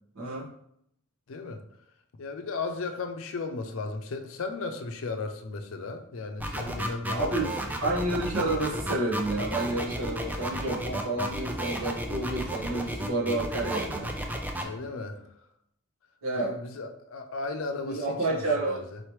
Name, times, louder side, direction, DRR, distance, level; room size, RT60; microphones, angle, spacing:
voice 1, 0.1-0.5 7.1-7.5 7.8-14.1 16.2-16.5 17.8-18.8, right 2 dB, 75° right, -5 dB, 1.3 m, -30 dB
voice 2, 1.3-1.6 2.2-7.5 14.6-15.2 16.3-18.0 18.3-19.0, left 3 dB, 65° left, 6 dB, 0.5 m, -35 dB
sound 1, 6.4-14.6, right 1 dB, 10° right, 0.3 m, -33 dB
4.0 x 3.1 x 3.1 m, 0.75 s
head